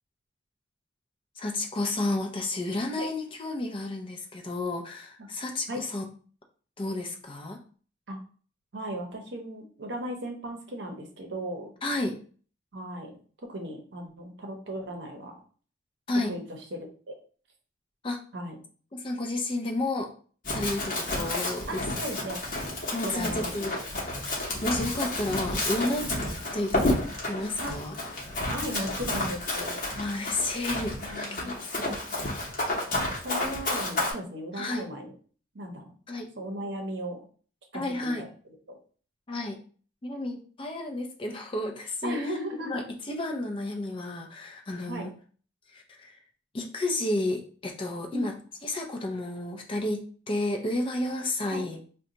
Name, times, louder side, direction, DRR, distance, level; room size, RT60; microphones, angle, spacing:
voice 1, 1.4-6.0 6.8-7.6 11.8-12.2 16.1-16.3 18.0-18.2 18.9-20.1 20.5-21.8 22.9-23.7 24.6-26.1 26.5-27.0 27.2-28.0 29.9-32.0 34.5-34.9 36.1-36.3 37.7-38.2 39.3-39.6 40.0-42.4 42.6-45.1 45.7-46.2 46.5-48.3 48.6-51.8, left 2 dB, 25° left, 3 dB, 0.4 m, -31 dB
voice 2, 8.7-11.7 12.7-13.2 13.5-15.4 16.2-17.1 18.3-18.5 21.7-22.4 23.0-23.7 27.6-27.7 28.5-29.8 31.0-31.6 32.9-35.1 35.5-35.9 36.4-37.2 37.7-38.3 42.0-42.8 44.8-45.1 48.1-48.3 51.5-51.7, equal, 60° right, 3 dB, 0.7 m, -36 dB
Run, 20.4-34.1, left 1 dB, 45° left, 0.9 m, -31 dB
2.7 x 2.2 x 3.8 m, 0.42 s
head